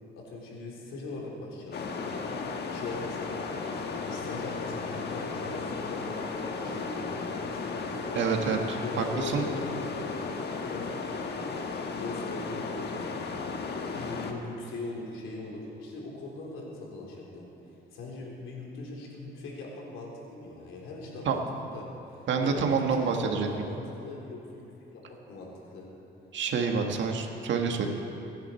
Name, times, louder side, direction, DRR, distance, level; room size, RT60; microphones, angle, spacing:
voice 1, 0.2-2.2 2.7-8.0 8.8-10.3 10.6-11.4 11.7-13.0 13.9-25.9, left 2 dB, 85° left, -3 dB, 3.6 m, -41 dB
sound 1, 1.7-14.3, left 4 dB, 55° left, 1.4 m, -35 dB
voice 2, 8.1-9.5 21.3-21.4 22.3-23.5 26.3-27.9, right 5 dB, 70° right, 3 dB, 1.8 m, -27 dB
23.5 x 10.5 x 4.5 m, 2.8 s
cardioid pair, 90°, 20 cm